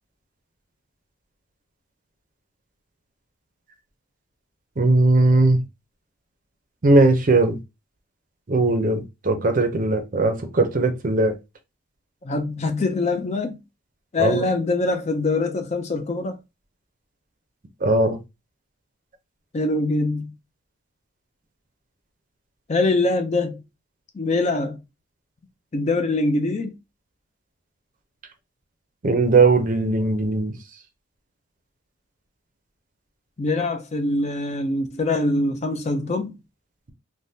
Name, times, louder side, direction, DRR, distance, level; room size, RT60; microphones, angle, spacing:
voice 1, 4.8-5.6 6.8-7.6 8.5-11.3 14.2-14.5 17.8-18.2 29.0-30.5, right 2 dB, 40° right, 0.5 m, -19 dB
voice 2, 12.2-13.6 14.1-16.4 19.5-20.3 22.7-23.6 24.1-24.8 25.7-26.8 33.4-36.4, left 2 dB, 35° left, 0.4 m, -23 dB
3.3 x 2.1 x 2.7 m
head